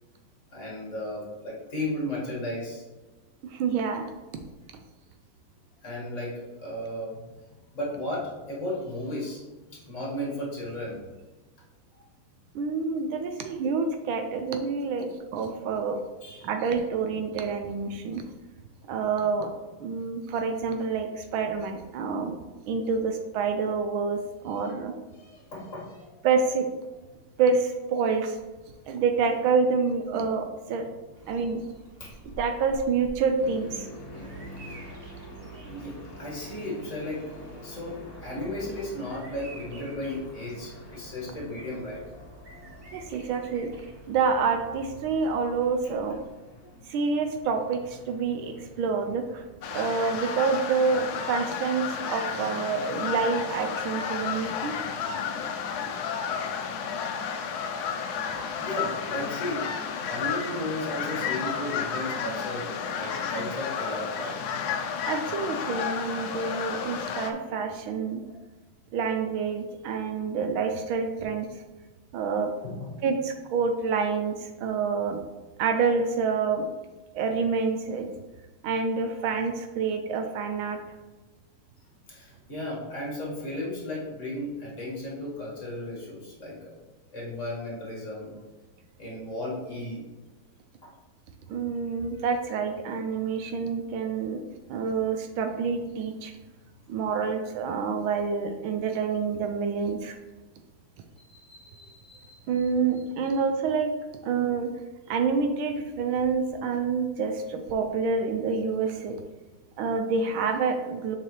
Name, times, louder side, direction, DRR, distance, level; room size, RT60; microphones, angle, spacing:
voice 1, 0.5-2.8 5.8-7.2 7.7-9.4 9.8-11.0 11.9-12.0 15.4-15.6 16.2-16.5 24.5-24.6 25.2-26.1 31.3-31.4 32.0-32.2 34.0-42.0 43.5-43.6 46.6-46.8 57.4-58.2 58.6-64.4 68.2-68.3 72.6-73.0 82.1-86.7 87.1-88.3 89.0-90.0 90.8-90.9 101.2-102.4, left 1 dB, 35° left, -5 dB, 2.1 m, -35 dB
voice 2, 3.4-4.1 12.5-16.0 16.4-18.2 18.9-19.5 19.8-22.4 22.7-24.9 26.2-26.7 27.4-28.4 28.9-30.9 31.3-31.6 32.4-33.9 42.9-43.7 44.1-46.2 46.9-49.4 49.7-54.8 65.1-68.2 68.9-71.5 72.1-72.5 73.0-75.2 75.6-76.7 77.1-78.1 78.6-80.8 91.5-94.4 94.7-96.3 96.9-100.2 102.5-103.9 104.2-104.7 105.1-109.2 109.8-111.2, right 5 dB, 75° right, 6 dB, 1.4 m, -27 dB
Bird vocalization bird call bird song, 31.2-46.3, right 2 dB, 60° right, 0.6 m, -49 dB
sound 1, 33.4-49.6, left 1 dB, 20° left, 1.1 m, -47 dB
sound 2, 49.6-67.3, left 6 dB, 75° left, 0.9 m, -32 dB
6.6 x 4.8 x 3.1 m, 1.2 s
omnidirectional pair, 2.3 m